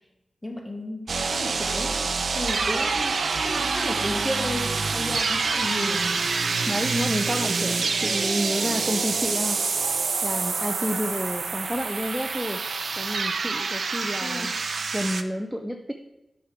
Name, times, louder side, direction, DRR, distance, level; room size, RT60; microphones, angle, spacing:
voice 1, 0.4-2.0 2.3-6.1 14.2-14.5, equal, 15° left, 0 dB, 2.1 m, -33 dB
sound 1, 1.1-15.2, right 4 dB, 75° right, 0.6 m, -26 dB
voice 2, 6.7-9.6 10.2-12.6 13.0-14.5 14.9-15.9, equal, 5° right, 4 dB, 0.6 m, -30 dB
10.0 x 6.4 x 4.9 m, 0.95 s
wide cardioid pair, 90°, 0 cm